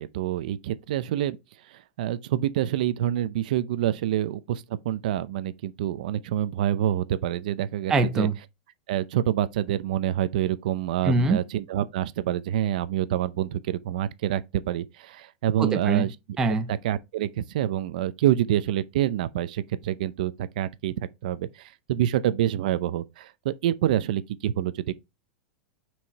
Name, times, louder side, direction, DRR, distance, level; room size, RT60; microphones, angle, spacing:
voice 1, 0.0-1.4 1.7-8.3 8.9-16.1 16.7-24.9, right 12 dB, 55° right, 0.5 m, -27 dB
voice 2, 7.9-8.4 11.0-11.4 15.6-16.1 16.4-16.7, right 3 dB, 10° right, 0.5 m, -23 dB
6.1 x 4.8 x 4.0 m
supercardioid pair, 175°, 5 cm